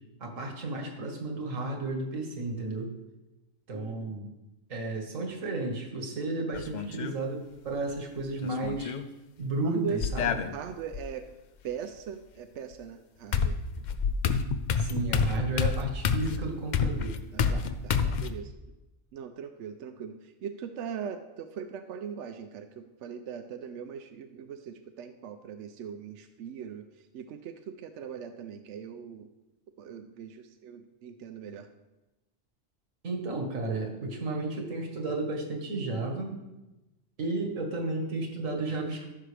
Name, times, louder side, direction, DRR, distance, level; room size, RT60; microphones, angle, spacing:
voice 1, 0.2-2.9 3.7-4.3 4.7-8.9 9.4-10.4 14.8-17.2 33.0-36.4 37.2-39.0, right 2 dB, 90° right, 2 dB, 1.8 m, -33 dB
voice 2, 3.7-4.1 9.6-10.0 10.5-11.3 11.6-13.6 17.3-18.5 19.1-29.3 29.8-31.7, right 7 dB, 70° right, 7 dB, 0.9 m, -40 dB
sound 1, 6.5-7.1 8.4-9.0 10.0-11.0 12.7-12.8 13.3-18.3, left 6 dB, 65° left, 0.4 m, -28 dB
14.0 x 6.1 x 3.3 m, 1.0 s
omnidirectional pair, 1.3 m